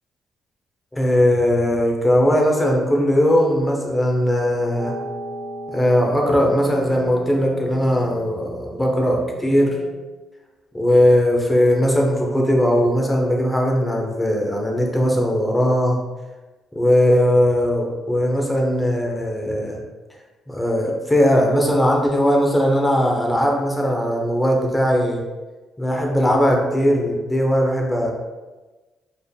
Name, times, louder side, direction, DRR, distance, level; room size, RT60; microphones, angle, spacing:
voice 1, 0.9-4.9 5.7-9.7 10.7-16.0 16.7-19.8 20.5-25.2 25.8-28.1, equal, 10° left, 0 dB, 0.8 m, -19 dB
sound 1, 4.8-9.9, right 1 dB, 80° right, 0.7 m, -36 dB
4.8 x 3.5 x 2.3 m, 1.2 s
cardioid pair, 90°, 0 cm